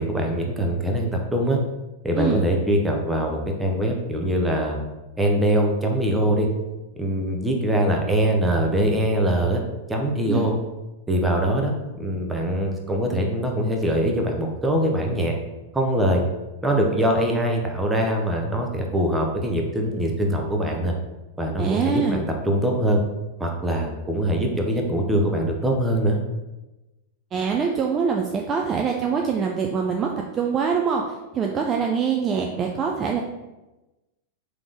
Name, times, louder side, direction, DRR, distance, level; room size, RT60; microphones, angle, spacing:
voice 1, 0.0-1.6 2.0-4.8 5.2-6.5 6.9-9.6 9.9-10.5 11.1-15.3 15.7-16.2 16.6-20.9 21.4-23.0 23.4-26.2, right 1 dB, 10° right, 1 dB, 0.8 m, -23 dB
voice 2, 2.2-2.5 10.3-10.5 21.6-22.2 27.3-33.2, right 6 dB, 30° right, 1 dB, 0.4 m, -24 dB
3.7 x 3.0 x 3.9 m, 1.1 s
hypercardioid pair, 105°, 0 cm